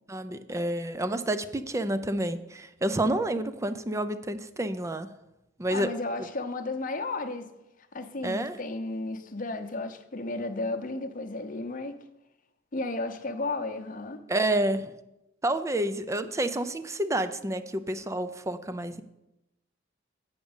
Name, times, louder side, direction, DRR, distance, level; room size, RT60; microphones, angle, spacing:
voice 1, 0.1-5.1 5.6-5.9 8.2-8.6 14.3-14.9 15.4-19.0, right 1 dB, 15° right, 0.4 m, -29 dB
voice 2, 5.7-7.5 7.9-12.0 12.7-14.2, left 2 dB, 45° left, 0.8 m, -33 dB
8.4 x 5.1 x 7.1 m
head